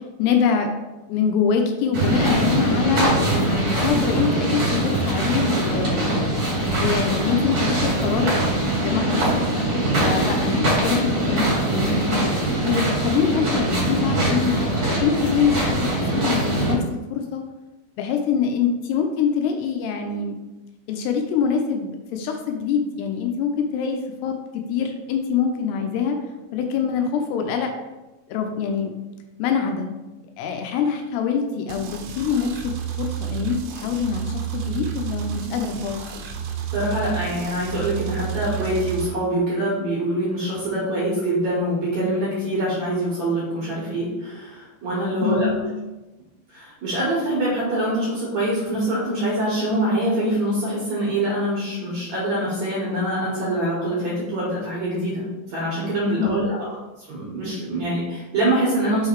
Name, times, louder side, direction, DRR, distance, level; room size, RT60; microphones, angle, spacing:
voice 1, 0.2-0.7 1.1-6.1 6.8-9.3 9.5-12.1 12.6-14.6 15.0-16.8 17.1-17.4 18.0-20.4 20.9-26.2 26.5-27.7 28.3-28.9 29.4-29.9 30.4-32.7 33.0-36.0 45.2-45.6 56.2-56.5, left 6 dB, 85° left, 4 dB, 2.6 m, -24 dB
sound 1, 1.9-16.7, right 1 dB, 40° right, 2.0 m, -22 dB
sound 2, 31.7-39.1, right 10 dB, 85° right, 2.3 m, -31 dB
voice 2, 36.7-45.6 46.5-55.2 55.5-56.6 57.0-59.1, right 1 dB, 55° right, -7 dB, 2.2 m, -24 dB
6.2 x 3.8 x 4.6 m, 1.1 s
omnidirectional pair, 5.0 m